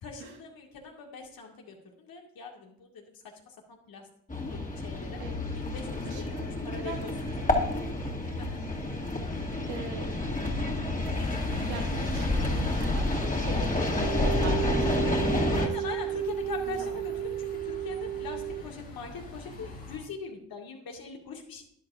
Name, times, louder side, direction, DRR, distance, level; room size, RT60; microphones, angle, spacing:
voice 1, 0.0-4.1 4.5-5.2 5.5-7.3 8.4-8.6 15.5-21.6, left 5 dB, 60° left, 1 dB, 2.3 m, -42 dB
sound 1, 4.3-15.7, left 2 dB, 20° left, 2.4 m, -29 dB
voice 2, 6.0-7.5 9.4-10.6 11.5-16.2 16.9-17.0, right 4 dB, 80° right, 1 dB, 2.0 m, -43 dB
Bus, 11.1-20.0, left 2 dB, 85° left, 3.7 m, -45 dB
sound 2, 13.7-18.6, right 13 dB, 35° right, 0.4 m, -33 dB
12.5 x 11.0 x 2.6 m, 0.74 s
hypercardioid pair, 40°, 40 cm